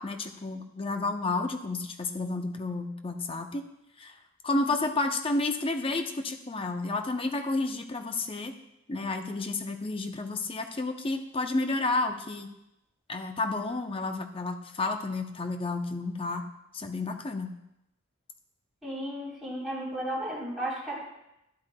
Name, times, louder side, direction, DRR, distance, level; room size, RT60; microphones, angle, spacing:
voice 1, 0.0-3.7 4.0-4.1 4.4-8.5 8.9-12.5 13.1-16.4 16.7-17.5, left 3 dB, 25° left, 6 dB, 0.6 m, -31 dB
voice 2, 18.8-21.0, right 1 dB, ahead, -8 dB, 3.4 m, -34 dB
11.5 x 8.0 x 2.2 m, 0.86 s
head